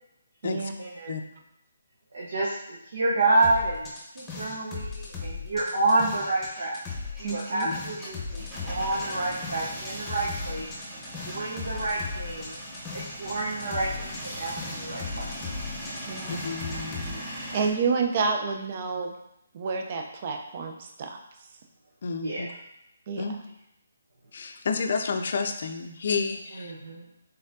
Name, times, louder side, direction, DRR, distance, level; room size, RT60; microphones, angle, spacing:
voice 1, 0.8-1.1 2.1-6.7 7.2-10.7 11.3-12.6 12.9-15.6 22.2-22.4 26.5-27.1, right 2 dB, 70° right, -5 dB, 0.8 m, -29 dB
sound 1, 3.4-6.5 6.7-13.3 13.6-17.1, left 4 dB, 10° left, 0.9 m, -37 dB
Male speech man speaking / Vehicle / Engine starting, 6.1-17.7, equal, 5° right, 1.3 m, -40 dB
voice 2, 7.2-7.7 16.1-16.5 17.5-19.1 19.5-21.2 23.1-23.2, right 5 dB, 40° right, 4 dB, 0.5 m, -29 dB
voice 3, 16.3-17.3 22.0-22.5 23.2-23.3 24.3-26.7, left 5 dB, 55° left, 6 dB, 0.5 m, -30 dB
4.1 x 3.8 x 2.7 m, 0.85 s
figure-of-eight pair, 150°, 0 cm